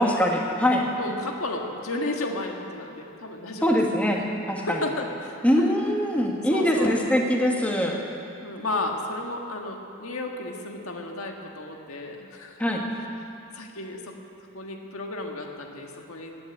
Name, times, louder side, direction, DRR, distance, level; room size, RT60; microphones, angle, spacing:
voice 1, 0.0-0.9 3.6-4.8 5.4-8.0 12.6-12.8, equal, 5° left, 0 dB, 1.3 m, -23 dB
voice 2, 1.0-3.8 4.6-5.7 6.5-7.0 8.4-12.8 13.5-14.2 14.5-16.5, left 2 dB, 90° left, 2 dB, 1.7 m, -33 dB
16.0 x 9.7 x 8.7 m, 2.7 s
head